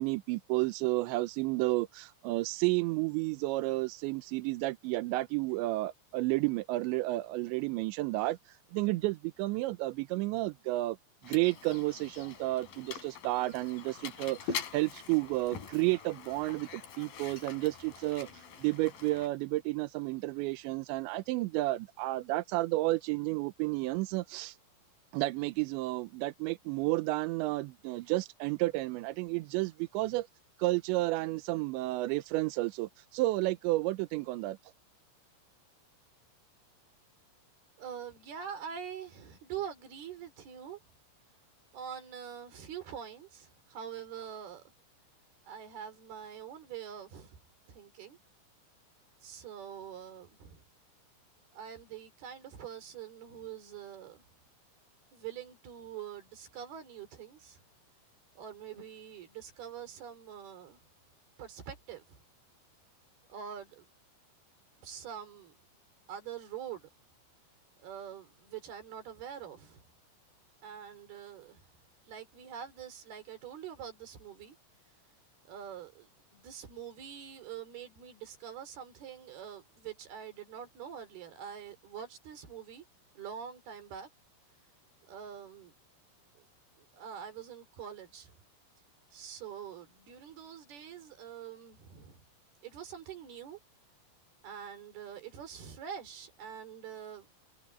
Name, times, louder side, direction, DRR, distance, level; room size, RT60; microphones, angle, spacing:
voice 1, 0.0-8.4 8.7-11.0 11.2-18.3 18.6-24.6 25.1-30.3 30.6-34.6, right 20 dB, 85° right, 2.7 m, -31 dB
Mechanisms, 11.2-19.3, left 6 dB, 50° left, 3.9 m, -44 dB
voice 2, 37.8-40.8 41.7-44.6 45.5-47.4 47.7-48.2 49.2-50.6 51.5-54.2 55.1-57.6 58.4-60.8 61.4-62.2 63.3-63.9 64.8-65.6 66.1-66.9 67.8-69.9 70.6-71.7 72.1-74.6 75.5-82.9 83.2-84.1 85.0-85.7 86.4-86.5 86.8-88.4 89.1-92.2 92.6-93.6 94.4-97.3, right 8 dB, 55° right, 5.4 m, -45 dB
omnidirectional pair, 5.8 m